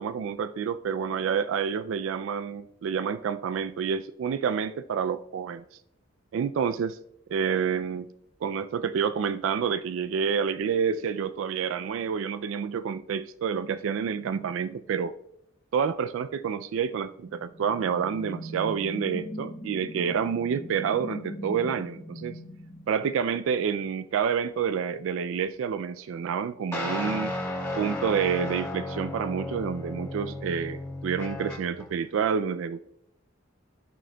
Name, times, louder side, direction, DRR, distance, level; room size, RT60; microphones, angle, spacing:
voice 1, 0.0-5.6 6.3-7.0 7.3-8.1 8.4-15.1 15.7-22.4 22.9-27.3 27.8-32.8, right 7 dB, 70° right, 0.3 m, -28 dB
sound 1, 17.2-23.6, equal, 35° left, 1.7 m, -40 dB
sound 2, 26.7-31.9, left 1 dB, 15° left, 2.5 m, -34 dB
14.5 x 6.3 x 2.2 m
head